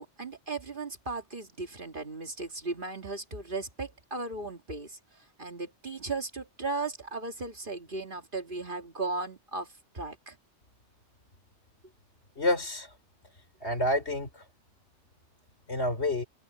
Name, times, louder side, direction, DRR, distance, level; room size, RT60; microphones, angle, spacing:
voice 1, 0.0-10.4, right 3 dB, 45° right, 2.1 m, -36 dB
voice 2, 12.4-12.9 13.6-14.4 15.7-16.2, left 1 dB, 60° left, 4.4 m, -28 dB
omnidirectional pair, 1.2 m